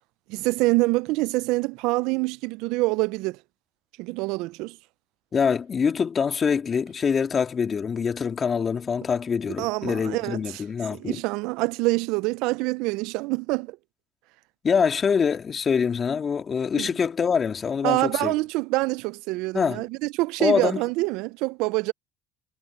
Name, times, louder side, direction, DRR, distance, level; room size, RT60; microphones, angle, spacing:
voice 1, 0.3-3.4 4.0-4.8 9.6-10.6 10.9-13.8 16.7-16.9 17.8-21.9, right 22 dB, 75° right, 0.5 m, -26 dB
voice 2, 5.3-11.2 14.6-18.3 19.5-19.8 20.4-20.8, left 6 dB, 40° left, 2.4 m, -24 dB
hypercardioid pair, 75°, 0 cm